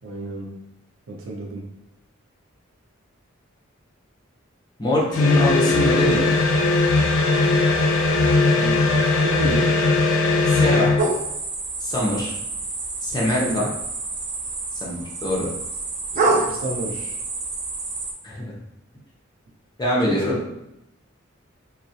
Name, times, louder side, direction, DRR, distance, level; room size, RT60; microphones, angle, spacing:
voice 1, 0.0-0.5 1.1-1.7 8.5-9.7 13.3-13.7 16.1-17.2 20.0-20.4, right 1 dB, 85° right, -1 dB, 0.6 m, -31 dB
voice 2, 4.8-6.3 10.5-10.9 11.8-12.3 13.0-13.7 14.8-15.5 18.2-18.5 19.8-20.4, left 1 dB, 20° left, -4 dB, 0.5 m, -23 dB
sound 1, 5.1-11.1, left 3 dB, 85° left, 0.4 m, -19 dB
sound 2, 11.0-18.1, right 3 dB, 35° right, 0.3 m, -27 dB
2.3 x 2.1 x 2.7 m, 0.86 s
head